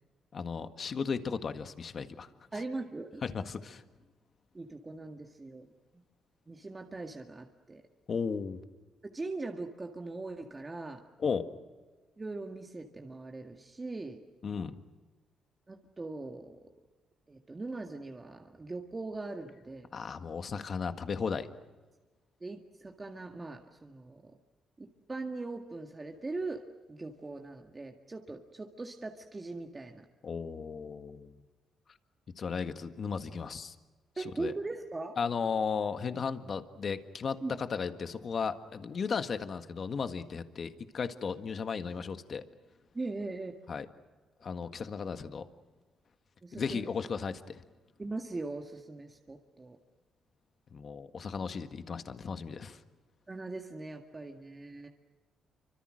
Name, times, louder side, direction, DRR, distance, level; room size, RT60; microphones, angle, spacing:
voice 1, 0.3-2.3 3.2-3.8 8.1-8.6 11.2-11.5 14.4-14.8 19.9-21.5 30.2-31.3 32.4-33.7 34.4-34.5 35.2-42.5 43.7-43.9 44.4-45.5 46.6-47.6 50.7-52.8, left 5 dB, 50° left, 9 dB, 1.7 m, -35 dB
voice 2, 2.5-3.2 4.5-5.7 6.5-7.8 9.0-11.1 12.2-14.2 15.7-16.7 17.3-19.9 22.4-24.4 24.8-30.1 34.2-35.2 37.4-37.5 42.9-43.5 46.4-46.8 48.0-49.8 53.3-54.9, right 3 dB, 25° right, 3 dB, 2.0 m, -40 dB
28.5 x 25.5 x 6.5 m, 1.2 s
cardioid pair, 90°, 0 cm